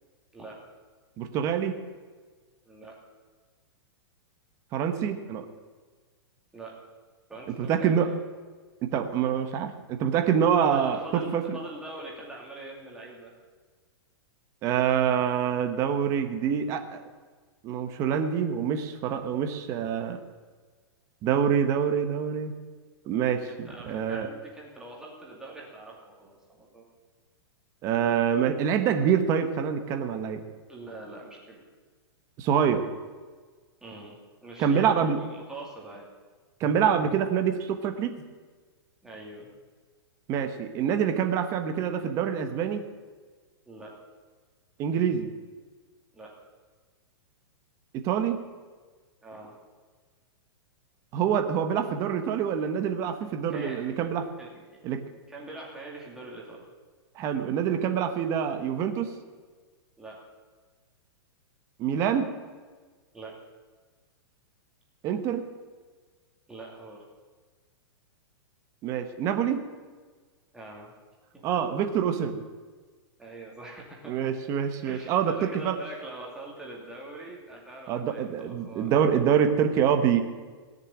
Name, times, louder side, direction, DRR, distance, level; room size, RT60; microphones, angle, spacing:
voice 1, 1.2-1.7 4.7-5.5 7.6-8.1 8.9-11.4 14.6-17.0 17.6-20.2 21.2-22.5 23.1-24.3 27.8-30.4 32.4-32.9 34.6-35.2 36.6-38.2 40.3-42.8 44.8-45.3 47.9-48.4 51.1-54.3 54.8-55.0 57.2-59.1 61.8-62.3 65.0-65.4 68.8-69.6 71.4-72.4 74.1-75.8 77.9-80.2, right 8 dB, 20° right, 7 dB, 1.2 m, -26 dB
voice 2, 2.7-3.0 6.5-6.8 7.3-8.2 10.6-13.3 23.4-26.8 30.7-31.7 33.8-36.1 39.0-39.5 43.7-43.9 46.1-46.3 49.2-49.5 53.5-53.9 54.4-54.8 55.3-56.6 60.0-60.2 63.1-63.4 66.5-67.0 70.5-70.9 71.3-71.4 73.2-74.2 74.9-78.9, right 2 dB, 5° right, -3 dB, 2.4 m, -43 dB
18.0 x 6.7 x 9.9 m, 1.4 s
supercardioid pair, 170°, 14 cm